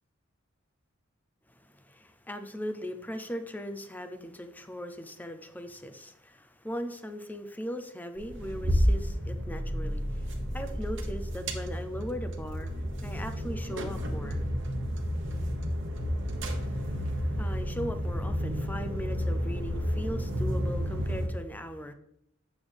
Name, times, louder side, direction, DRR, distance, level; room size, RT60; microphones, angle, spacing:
voice 1, 1.6-10.2 10.5-14.5 16.6-21.9, equal, 10° left, 8 dB, 0.6 m, -39 dB
sound 1, 8.2-21.3, equal, 60° right, 1.1 m, -31 dB
8.4 x 7.1 x 3.5 m, 0.77 s
head